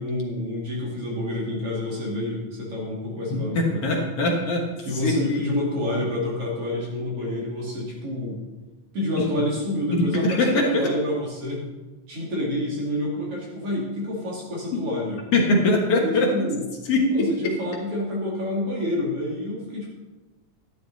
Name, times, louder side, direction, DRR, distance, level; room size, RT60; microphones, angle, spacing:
voice 1, 0.0-4.1 4.8-8.4 8.9-11.6 12.1-15.2 16.0-16.6 17.1-19.9, left 1 dB, 45° right, -3 dB, 3.2 m, -28 dB
voice 2, 3.3-4.7 4.9-5.5 9.9-10.9 14.7-14.8 15.3-16.3 16.9-17.3, left 2 dB, 55° left, 0 dB, 2.0 m, -22 dB
12.0 x 11.0 x 4.1 m, 1.1 s
omnidirectional pair, 4.0 m